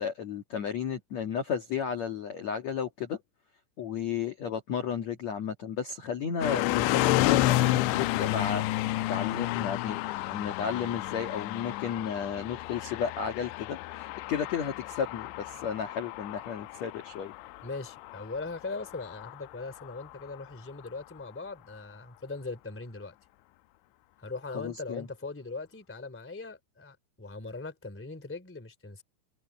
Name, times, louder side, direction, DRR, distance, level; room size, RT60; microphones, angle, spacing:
voice 1, 0.0-3.2 3.8-10.0 10.3-17.3 24.5-25.1, left 7 dB, 65° left, 1.7 m, -33 dB
sound 1, 6.4-20.4, left 17 dB, 85° left, 2.6 m, -31 dB
voice 2, 17.6-23.1 24.2-29.0, left 3 dB, 5° left, 1.8 m, -40 dB
omnidirectional pair, 5.8 m